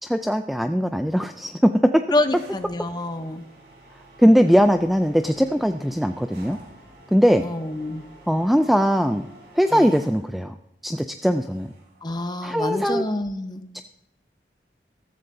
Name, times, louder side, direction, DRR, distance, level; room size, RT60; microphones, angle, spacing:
voice 1, 0.0-2.0 4.2-6.6 7.1-7.4 8.3-9.3 9.5-10.5 10.8-11.7 12.4-13.0 13.7-13.8, equal, ahead, 8 dB, 0.3 m, -20 dB
voice 2, 2.1-3.4 7.4-8.0 9.7-9.9 12.0-13.6, left 2 dB, 25° left, 8 dB, 0.8 m, -27 dB
sound 1, 2.3-10.4 11.2-12.1, right 1 dB, 65° right, 3.6 m, -49 dB
14.5 x 13.5 x 2.7 m, 0.85 s
head